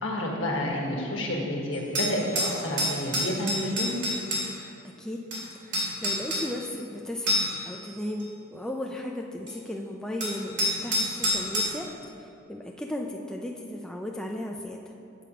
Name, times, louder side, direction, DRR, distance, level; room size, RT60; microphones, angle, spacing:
voice 1, 0.0-3.9, left 1 dB, 75° left, -2 dB, 1.5 m, -29 dB
sound 1, 1.7-4.4 5.3-5.4 5.7-6.4 7.3-7.7 8.2-8.3 9.5-9.6 10.2-11.7, left 1 dB, 65° right, 2.1 m, -27 dB
voice 2, 5.6-11.9 12.2-14.8, left 1 dB, 5° left, 0 dB, 0.3 m, -35 dB
7.6 x 6.6 x 5.0 m, 2.7 s
head